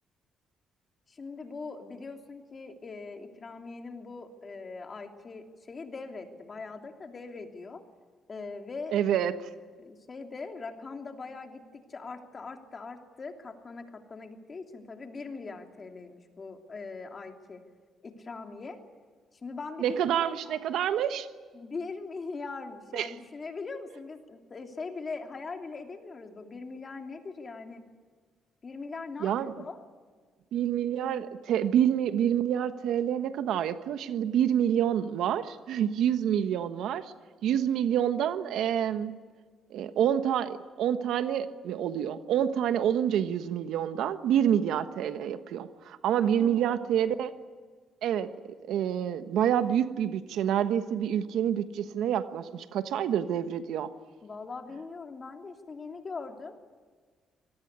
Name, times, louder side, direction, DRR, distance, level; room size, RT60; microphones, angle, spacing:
voice 1, 1.1-7.8 8.3-9.0 9.7-17.6 18.0-18.8 19.3-20.6 21.5-27.8 28.6-29.8 46.2-46.8 54.2-56.6, left 4 dB, 35° left, 4 dB, 3.0 m, -41 dB
voice 2, 8.9-9.3 19.8-21.3 22.9-23.1 29.2-29.5 30.5-37.1 37.4-39.2 39.7-47.3 48.0-48.3 48.7-53.9, right 9 dB, 80° right, 10 dB, 1.2 m, -27 dB
25.0 x 19.0 x 9.5 m, 1.5 s
cardioid pair, 90°, 0 cm